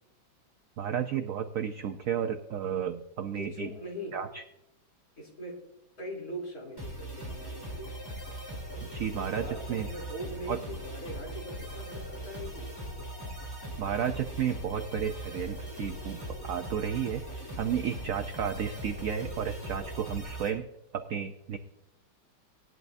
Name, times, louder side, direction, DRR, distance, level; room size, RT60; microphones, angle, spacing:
voice 1, 0.8-3.7 4.1-4.4 8.8-9.9 10.5-10.6 13.8-17.2 17.6-20.6 20.9-21.6, right 8 dB, 75° right, 7 dB, 0.7 m, -32 dB
voice 2, 3.3-4.2 5.2-5.6 6.0-7.9 9.2-12.7, equal, 50° left, -2 dB, 3.8 m, -41 dB
sound 1, 6.8-20.5, right 1 dB, 10° left, 3.1 m, -40 dB
17.5 x 11.0 x 2.6 m, 0.86 s
omnidirectional pair, 2.1 m